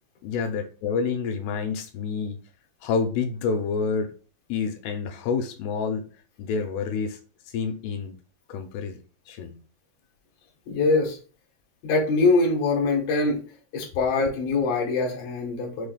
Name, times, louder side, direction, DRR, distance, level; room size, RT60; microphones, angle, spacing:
voice 1, 0.2-2.4 2.8-4.1 4.5-6.1 6.4-7.2 7.5-8.2 8.5-9.0 9.3-9.6, left 5 dB, 85° left, 2.5 m, -28 dB
voice 2, 10.7-11.2 11.8-13.4 13.7-15.9, left 3 dB, 65° left, 2.2 m, -23 dB
6.4 x 3.3 x 2.3 m
omnidirectional pair, 4.7 m